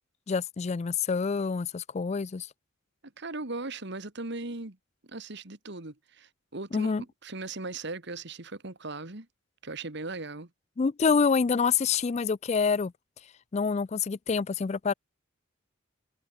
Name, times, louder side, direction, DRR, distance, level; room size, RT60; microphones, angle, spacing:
voice 1, 0.3-2.5 6.7-7.0 10.8-12.9 13.5-14.9, left 5 dB, 30° left, 0.4 m, -27 dB
voice 2, 3.0-4.8 5.0-9.3 9.6-10.5, right 3 dB, 55° right, 2.0 m, -38 dB
head